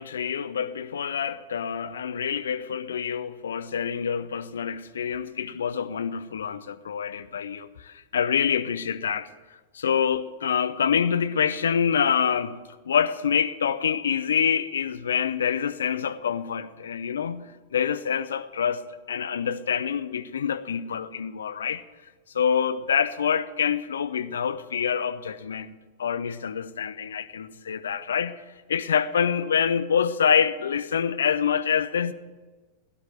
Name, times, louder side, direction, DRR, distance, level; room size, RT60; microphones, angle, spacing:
voice 1, 0.0-9.3 9.7-12.6 12.8-18.8 19.1-21.8 22.3-28.4 28.7-32.1, left 7 dB, 65° left, 0.8 m, -26 dB
17.0 x 11.0 x 7.8 m
figure-of-eight pair, 90°, 0 cm